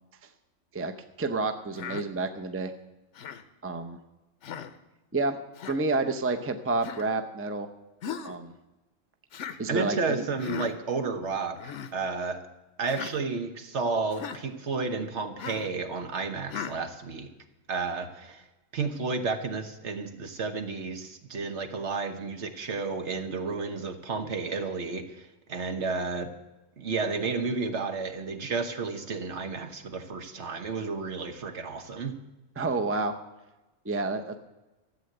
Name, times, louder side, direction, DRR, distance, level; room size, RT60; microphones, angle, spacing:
voice 1, 1.2-2.7 3.6-4.0 5.1-5.4 5.7-7.7 8.2-8.5 9.6-10.2 32.6-33.1 33.8-34.4, right 3 dB, 15° right, 7 dB, 0.6 m, -29 dB
Human voice, 1.8-2.1 3.2-3.4 4.4-4.7 5.6-5.8 6.8-7.1 8.0-8.4 9.3-9.6 10.4-10.7 11.5-11.9 12.9-13.1 14.1-14.4 15.4-15.7 16.5-16.8, left 8 dB, 70° left, 1.1 m, -37 dB
voice 2, 9.7-12.4 12.8-17.3 17.7-18.4 18.7-26.3 26.8-32.2, right 4 dB, 65° right, 7 dB, 1.4 m, -32 dB
13.5 x 7.8 x 7.8 m, 1.1 s
omnidirectional pair, 1.3 m